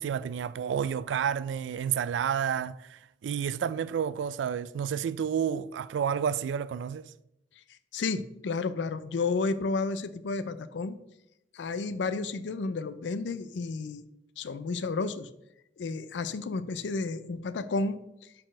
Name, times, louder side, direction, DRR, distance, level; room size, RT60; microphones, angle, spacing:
voice 1, 0.0-7.1, right 8 dB, 85° right, 0.3 m, -30 dB
voice 2, 7.9-11.0 11.5-14.1 14.4-15.3 15.8-18.0, left 3 dB, 80° left, 0.4 m, -31 dB
6.0 x 4.4 x 5.0 m
head